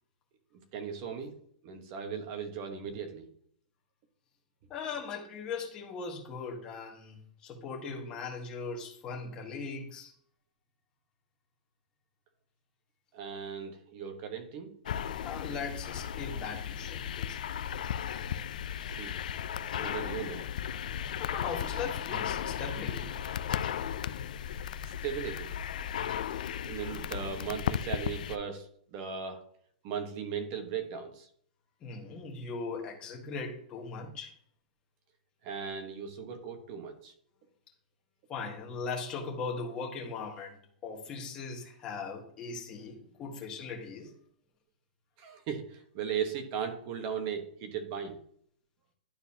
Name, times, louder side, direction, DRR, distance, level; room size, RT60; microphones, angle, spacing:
voice 1, 0.7-1.4 1.6-3.3 13.1-14.7 18.9-19.2 19.6-20.4 24.8-25.5 26.6-29.4 29.8-31.3 35.4-37.1 45.2-48.2, right 7 dB, 35° right, 6 dB, 1.2 m, -37 dB
voice 2, 4.7-10.1 15.2-17.4 21.2-23.1 31.8-34.3 38.3-44.1, left 4 dB, 20° left, -1 dB, 1.6 m, -39 dB
sound 1, 14.9-28.4, left 9 dB, 65° left, 0.4 m, -35 dB
11.5 x 4.0 x 2.8 m, 0.62 s
hypercardioid pair, 160°, 5 cm